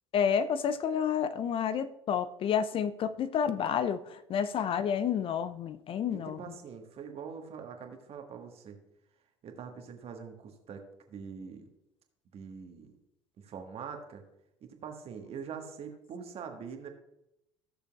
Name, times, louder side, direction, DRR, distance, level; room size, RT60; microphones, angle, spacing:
voice 1, 0.1-6.4, left 8 dB, 40° left, 0.5 m, -30 dB
voice 2, 6.1-8.8 9.4-10.8 11.1-11.7 12.3-12.9 13.4-14.2 14.6-16.9, right 6 dB, 45° right, 1.4 m, -43 dB
15.5 x 6.7 x 2.3 m
figure-of-eight pair, 60°, 14 cm